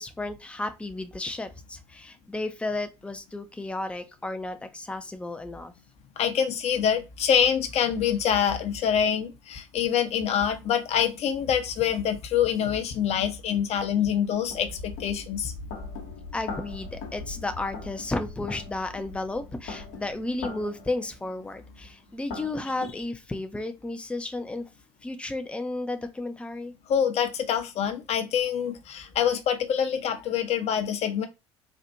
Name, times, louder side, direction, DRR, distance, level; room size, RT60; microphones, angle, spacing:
voice 1, 0.0-5.7 16.3-24.7 25.0-26.7, left 2 dB, 10° left, 0.6 m, -33 dB
voice 2, 6.2-15.5 26.9-31.3, left 8 dB, 45° left, 0.8 m, -25 dB
sound 1, 13.1-13.2 13.9-22.9, left 3 dB, 65° left, 1.1 m, -41 dB
4.4 x 2.5 x 2.5 m
hypercardioid pair, 65°, 15 cm